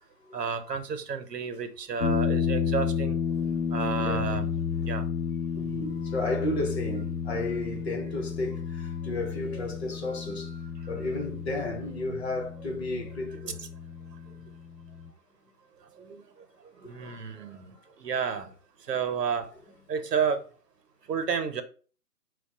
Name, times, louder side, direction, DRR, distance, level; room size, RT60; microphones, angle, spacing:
voice 1, 0.3-3.2 3.7-4.5 4.8-5.0 13.5-13.7 16.0-16.1 16.8-17.7 18.0-18.5 18.9-19.5 19.9-20.4 21.1-21.6, right 6 dB, 80° right, 0.7 m, -30 dB
sound 1, 2.0-15.1, left 7 dB, 80° left, 0.5 m, -32 dB
voice 2, 3.4-4.5 4.8-4.9 5.5-10.5 10.9-13.6 16.8-17.2 17.5-17.6, left 2 dB, 40° left, 0.9 m, -33 dB
4.3 x 2.2 x 2.7 m
figure-of-eight pair, 145°, 47 cm